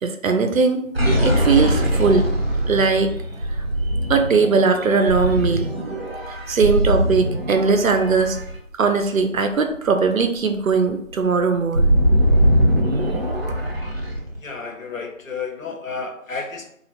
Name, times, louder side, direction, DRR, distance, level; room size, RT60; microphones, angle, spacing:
voice 1, 0.0-0.8 1.2-2.3 2.7-3.1 4.1-5.7 6.5-8.4 8.8-11.8, right 4 dB, 90° right, 6 dB, 0.6 m, -19 dB
sound 1, 0.9-9.3 9.7-9.9 10.2-14.4, equal, 50° right, 0.6 m, -21 dB
voice 2, 14.4-16.7, left 4 dB, 80° left, 3 dB, 0.7 m, -31 dB
2.4 x 2.0 x 2.9 m, 0.71 s
figure-of-eight pair, 175°, 40 cm